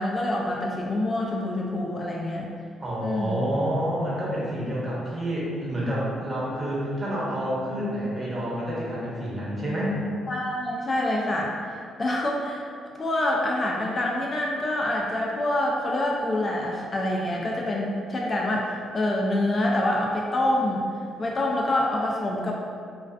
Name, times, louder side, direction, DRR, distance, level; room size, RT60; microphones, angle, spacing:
voice 1, 0.0-2.5 3.0-3.4 10.3-11.5 12.0-12.7 13.0-20.8 21.2-22.5, left 1 dB, 35° left, -2 dB, 0.3 m, -26 dB
voice 2, 2.8-10.0, equal, 30° right, -7 dB, 0.8 m, -28 dB
2.3 x 2.2 x 2.4 m, 2.3 s
cardioid pair, 90°, 0 cm